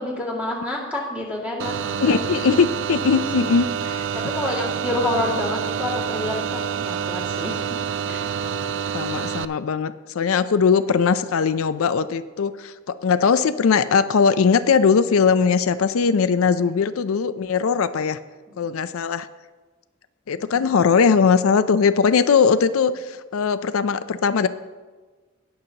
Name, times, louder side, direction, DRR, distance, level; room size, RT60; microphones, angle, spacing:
voice 1, 0.0-2.2 3.4-3.7 4.1-7.8 8.1-8.4 16.6-16.7 18.5-18.7 20.3-20.7, left 1 dB, 5° right, -4 dB, 2.1 m, -29 dB
sound 1, 1.6-9.4, right 7 dB, 60° right, 0.3 m, -27 dB
voice 2, 2.0-4.1 8.5-8.6 8.9-18.2 18.6-19.3 20.3-24.5, left 5 dB, 80° left, 13 dB, 0.4 m, -20 dB
19.5 x 6.7 x 2.9 m, 1.3 s
head